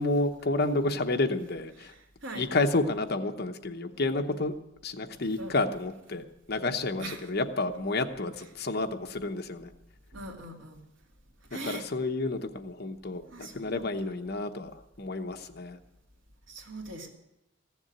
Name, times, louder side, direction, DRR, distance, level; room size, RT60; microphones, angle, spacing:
voice 1, 0.0-1.9 2.3-4.5 4.8-9.7 11.5-14.7 15.0-15.8, left 2 dB, 55° left, 7 dB, 0.9 m, -30 dB
voice 2, 1.8-2.5 5.4-5.5 6.6-7.3 10.1-10.8 11.5-11.9 13.3-14.1 16.5-17.1, right 2 dB, 75° right, 1 dB, 2.2 m, -42 dB
15.5 x 7.2 x 9.2 m, 0.92 s
head